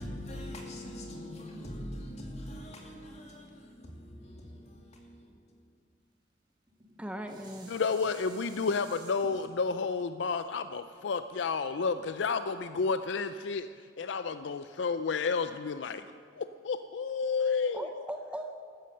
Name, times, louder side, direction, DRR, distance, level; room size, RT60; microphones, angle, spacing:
voice 1, 0.0-5.6, left 1 dB, 35° left, 2.3 m, -43 dB
Dishes pots and pans, 6.7-12.0 12.5-12.6, right 2 dB, 25° right, 2.1 m, -54 dB
voice 2, 7.0-7.7 17.7-18.6, right 1 dB, 5° right, 0.6 m, -39 dB
voice 3, 7.7-16.0 16.4-17.8, left 5 dB, 65° left, 0.4 m, -31 dB
14.0 x 13.5 x 6.6 m
head